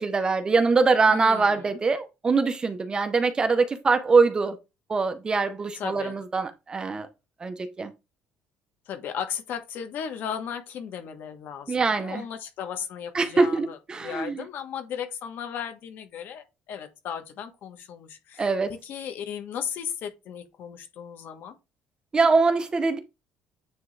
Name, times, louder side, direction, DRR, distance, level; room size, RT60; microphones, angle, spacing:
voice 1, 0.0-4.6 4.9-7.1 7.4-7.9 11.7-12.2 13.1-14.4 18.4-18.7 22.1-23.0, right 4 dB, 20° right, 0.8 m, -23 dB
voice 2, 1.1-1.7 5.7-6.2 8.9-18.5 18.8-21.6, left 8 dB, 60° left, 1.4 m, -36 dB
9.2 x 3.6 x 3.3 m
cardioid pair, 140°, 4 cm